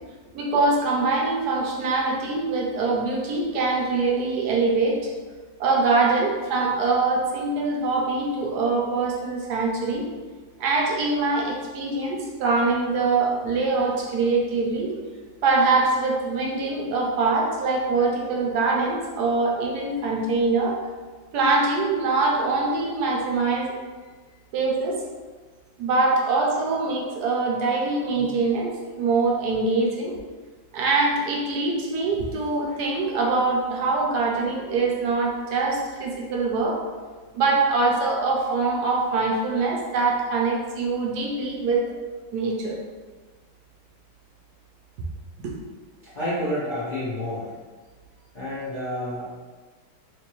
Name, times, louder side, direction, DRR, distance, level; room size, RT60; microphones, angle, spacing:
voice 1, 0.3-5.0 5.6-10.1 10.6-14.9 15.4-20.8 21.3-23.7 24.5-25.0 25.8-30.2 30.7-36.8 37.3-41.8 42.3-42.8 45.4-45.5, right 3 dB, 70° right, -2 dB, 1.0 m, -23 dB
voice 2, 46.0-47.5 48.3-49.3, left 1 dB, 55° left, -12 dB, 0.5 m, -29 dB
3.4 x 3.1 x 3.0 m, 1.4 s
omnidirectional pair, 2.2 m